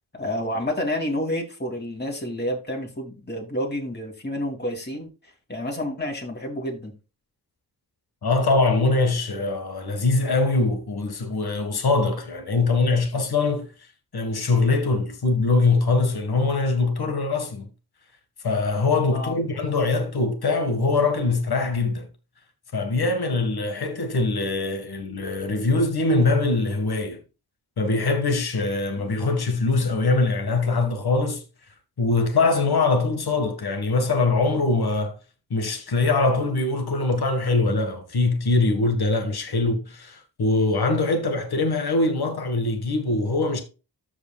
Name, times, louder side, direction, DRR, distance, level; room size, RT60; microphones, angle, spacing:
voice 1, 0.1-5.1 5.5-6.9 19.1-19.3 29.0-29.1, left 1 dB, 25° left, 2.9 m, -29 dB
voice 2, 8.2-13.7 14.1-17.7 18.4-22.1 22.7-27.2 27.8-31.4 32.0-35.1 35.5-43.6, left 3 dB, 85° left, 1.7 m, -23 dB
14.0 x 4.9 x 2.3 m
wide cardioid pair, 70°, 37 cm